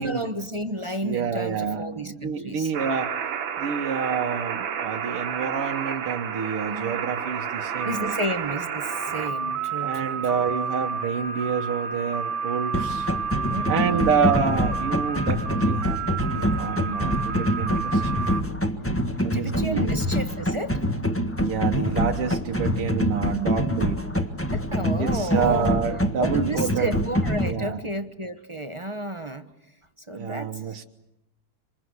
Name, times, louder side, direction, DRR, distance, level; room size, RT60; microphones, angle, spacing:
voice 1, 0.0-2.7 7.8-10.4 13.5-14.0 19.3-20.8 24.5-25.8 26.2-29.4 30.1-30.8, right 1 dB, 25° right, 9 dB, 0.7 m, -31 dB
voice 2, 1.0-3.1 3.6-8.2 9.8-13.1 13.7-18.2 19.2-20.0 21.4-24.1 25.0-26.9 27.4-27.8 30.1-30.8, right 6 dB, 90° right, 3 dB, 2.2 m, -28 dB
sound 1, 2.7-18.4, right 6 dB, 65° right, 2.0 m, -30 dB
sound 2, 12.7-27.5, equal, 10° left, 1.1 m, -25 dB
27.0 x 26.5 x 8.0 m, 0.91 s
omnidirectional pair, 2.4 m